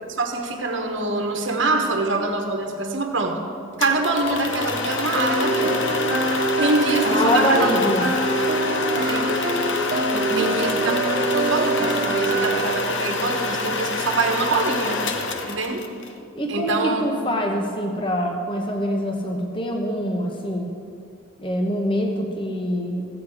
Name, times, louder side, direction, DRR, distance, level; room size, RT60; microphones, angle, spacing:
voice 1, 0.1-3.4 3.8-5.9 6.6-7.7 8.9-9.4 10.3-11.0 11.3-15.0 15.4-15.8 16.5-17.0, right 3 dB, 60° right, 3 dB, 1.2 m, -24 dB
sound 1, 3.8-16.1, left 3 dB, 60° left, 0.9 m, -27 dB
sound 2, 5.1-12.8, right 2 dB, 45° right, 1.2 m, -24 dB
voice 2, 7.0-8.0 10.1-10.6 16.3-20.7 21.4-23.0, equal, 25° left, 1 dB, 1.0 m, -25 dB
15.5 x 8.1 x 4.9 m, 2.4 s
head